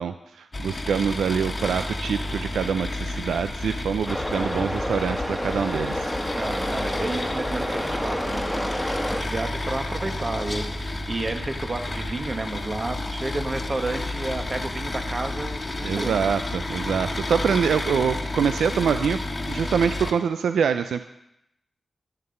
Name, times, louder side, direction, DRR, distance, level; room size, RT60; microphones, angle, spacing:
voice 1, 0.0-6.1 15.8-19.2 19.5-21.0, right 7 dB, 90° right, 10 dB, 0.3 m, -25 dB
sound 1, 0.5-20.1, left 2 dB, 40° left, 1.2 m, -31 dB
sound 2, 4.1-9.2, equal, 5° left, 1.5 m, -29 dB
voice 2, 6.4-16.2, right 2 dB, 45° right, 5 dB, 1.5 m, -31 dB
12.5 x 5.9 x 5.4 m, 0.82 s
cardioid pair, 45°, 0 cm